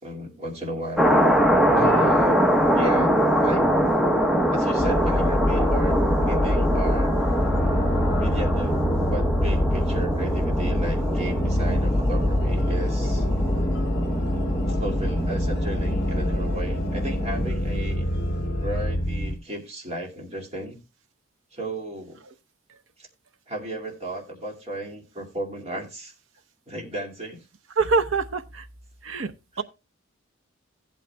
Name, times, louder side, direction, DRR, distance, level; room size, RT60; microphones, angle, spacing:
voice 1, 0.0-1.1 1.7-3.7 4.5-7.1 8.2-13.3 14.7-18.1 18.6-20.8 21.5-22.2 23.0-23.1 23.5-26.1 26.7-27.5 29.5-29.6, right 1 dB, 30° right, 2.3 m, -34 dB
sound 1, 1.0-17.5, equal, ahead, 0.8 m, -24 dB
voice 2, 1.7-2.1 27.8-28.6 29.0-29.3 29.6-29.7, right 4 dB, 65° right, 0.8 m, -25 dB
sound 2, 4.8-19.3, left 1 dB, 30° left, 1.5 m, -25 dB
sound 3, 7.2-9.4 10.7-19.0, left 1 dB, 50° left, 1.7 m, -37 dB
16.0 x 8.7 x 2.2 m
head